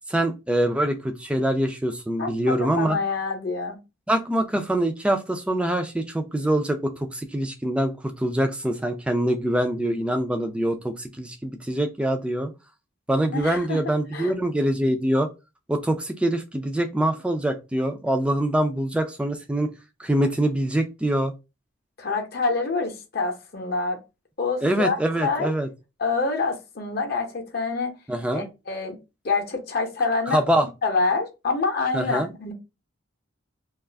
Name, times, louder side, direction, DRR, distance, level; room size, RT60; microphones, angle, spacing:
voice 1, 0.1-3.0 4.1-12.5 13.1-15.3 15.7-19.7 20.0-21.3 24.6-25.7 28.1-28.5 30.3-30.7 31.9-32.3, right 1 dB, 5° right, 0.3 m, -24 dB
voice 2, 2.2-3.8 13.3-13.8 14.1-14.3 22.0-24.0 24.4-25.5 26.0-27.9 28.3-29.0 29.2-30.4 30.8-32.5, left 4 dB, 50° left, 0.7 m, -26 dB
2.4 x 2.4 x 3.2 m
head